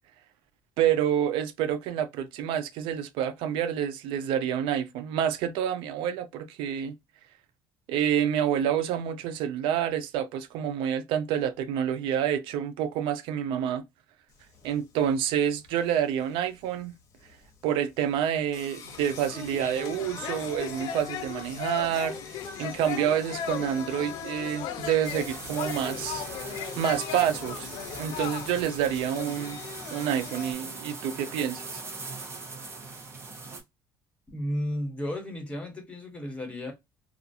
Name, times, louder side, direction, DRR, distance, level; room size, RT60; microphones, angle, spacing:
voice 1, 0.8-7.0 7.9-13.8 14.6-16.9 17.6-27.7 28.0-29.6 29.9-31.8, right 9 dB, 80° right, 0.4 m, -28 dB
Singing, 14.3-30.5, left 5 dB, 40° left, 0.9 m, -43 dB
sound 1, 18.9-29.0, left 10 dB, 70° left, 0.5 m, -38 dB
sound 2, 25.0-33.6, right 3 dB, 30° right, 0.8 m, -41 dB
voice 2, 34.3-36.7, equal, 15° left, 1.2 m, -33 dB
2.4 x 2.4 x 2.6 m
cardioid pair, 120°, 9 cm